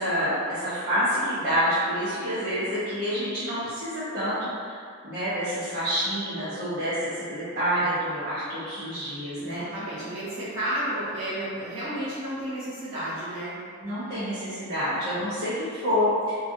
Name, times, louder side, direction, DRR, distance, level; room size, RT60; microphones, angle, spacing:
voice 1, 0.0-4.8 5.0-9.6 13.8-16.4, equal, 50° right, -16 dB, 0.9 m, -27 dB
voice 2, 9.4-13.6, right 1 dB, 65° right, -11 dB, 1.3 m, -32 dB
3.0 x 2.4 x 2.6 m, 2.2 s
head